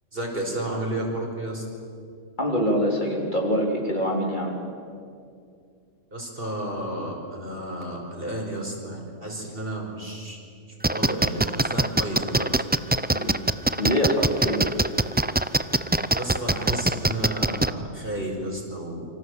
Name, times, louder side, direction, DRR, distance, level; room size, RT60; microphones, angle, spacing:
voice 1, 0.1-1.6 6.1-10.4 10.8-12.5 12.9-13.3 16.1-19.1, right 1 dB, 45° right, -1 dB, 5.5 m, -32 dB
voice 2, 2.4-4.6 13.1-13.3 13.8-14.7, equal, 35° left, 0 dB, 3.8 m, -24 dB
sound 1, 10.8-17.7, right 2 dB, 15° right, 0.3 m, -22 dB
28.5 x 25.5 x 8.0 m, 2.4 s
omnidirectional pair, 1.3 m